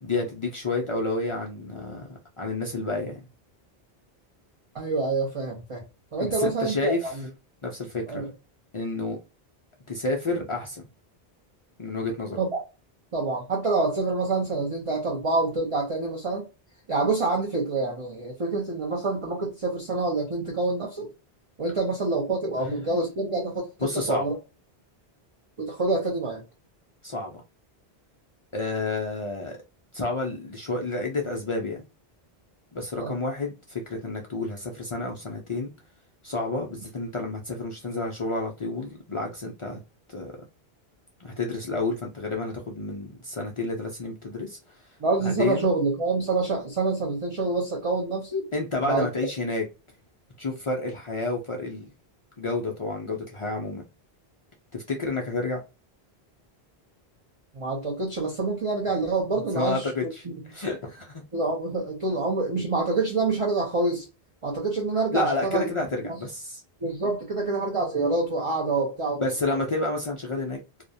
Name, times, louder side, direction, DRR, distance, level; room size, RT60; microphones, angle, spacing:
voice 1, 0.0-3.2 6.2-7.0 7.6-8.3 8.7-9.2 9.9-10.8 11.8-12.4 23.8-24.2 27.0-27.4 28.5-29.6 29.9-31.8 32.7-35.7 36.2-39.8 40.1-40.3 41.2-44.6 45.2-45.6 48.5-49.6 50.4-51.9 52.4-53.9 54.7-55.6 59.5-60.2 60.5-61.2 65.1-66.6 69.2-70.6, left 3 dB, 55° left, 0.3 m, -30 dB
voice 2, 4.7-5.8 6.1-7.3 8.1-8.3 12.4-12.6 13.1-16.5 16.9-21.1 21.6-24.3 25.6-26.4 32.9-33.1 45.0-48.5 48.8-49.1 57.5-59.9 60.2-60.3 61.3-64.0 64.4-65.7 66.0-66.2 66.8-69.2, right 3 dB, 35° right, 0.6 m, -27 dB
2.4 x 2.1 x 2.6 m
omnidirectional pair, 1.1 m